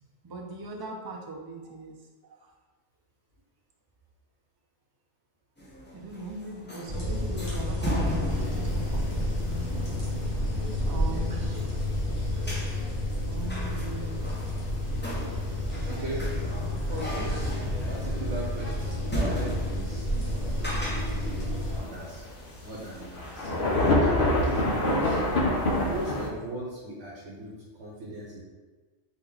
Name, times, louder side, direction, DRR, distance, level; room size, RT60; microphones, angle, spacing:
voice 1, 0.2-2.0 2.2-2.5 5.9-9.4 10.0-10.1 10.8-11.7 13.3-14.3 15.9-16.0, right 3 dB, 35° right, 1 dB, 0.4 m, -40 dB
sound 1, 5.6-25.0, equal, 10° left, 0.7 m, -38 dB
sound 2, 6.9-21.8, left 1 dB, 75° left, 1.9 m, -30 dB
sound 3, 8.3-26.3, left 1 dB, 50° left, 0.9 m, -31 dB
voice 2, 11.0-11.5 15.4-15.6 15.8-16.3 16.9-22.2 22.6-23.6 24.0-25.2 25.8-27.5 27.8-28.4, right 2 dB, 75° right, -5 dB, 1.1 m, -38 dB
4.3 x 3.0 x 3.9 m, 1.3 s
omnidirectional pair, 1.2 m